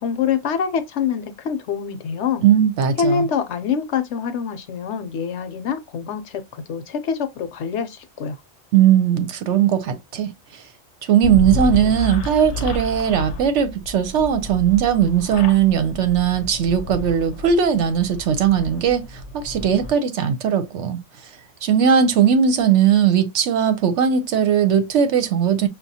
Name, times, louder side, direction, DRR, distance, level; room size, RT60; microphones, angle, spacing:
voice 1, 0.0-2.4 3.0-8.4, left 7 dB, 65° left, 0.9 m, -25 dB
voice 2, 2.4-3.3 8.7-10.3 11.1-19.1 19.3-21.0 21.6-25.7, right 8 dB, 70° right, 0.9 m, -18 dB
sound 1, 11.2-19.9, left 2 dB, 80° left, 0.3 m, -31 dB
5.6 x 2.3 x 2.7 m
omnidirectional pair, 1.4 m